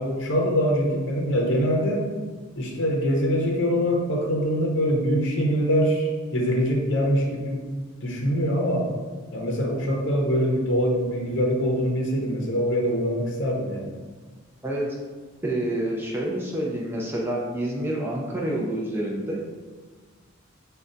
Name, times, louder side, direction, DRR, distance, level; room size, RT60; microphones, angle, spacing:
voice 1, 0.0-2.1 2.5-7.6 8.0-8.9 9.3-13.9, equal, 60° left, -1 dB, 0.7 m, -24 dB
voice 2, 15.4-19.4, right 1 dB, 10° right, -2 dB, 0.4 m, -28 dB
5.2 x 2.2 x 2.5 m, 1.4 s
head